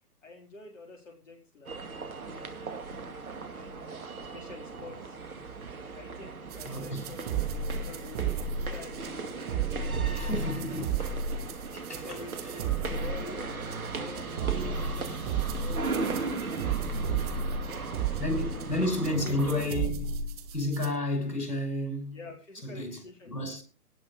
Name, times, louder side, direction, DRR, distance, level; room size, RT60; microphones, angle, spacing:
voice 1, 0.2-5.2 5.9-9.2 9.6-10.5 11.9-16.2 17.8-19.3 22.1-23.6, left 3 dB, 55° left, 4.3 m, -49 dB
sound 1, 1.7-19.7, right 4 dB, 65° right, 2.6 m, -37 dB
sound 2, 6.5-20.9, right 5 dB, 25° right, 1.5 m, -33 dB
voice 2, 6.7-7.0 10.1-11.1 11.7-12.2 18.2-22.2 22.6-23.0 23.3-23.6, left 1 dB, 85° left, 6.1 m, -31 dB
18.5 x 6.3 x 6.7 m
figure-of-eight pair, 135°, 46 cm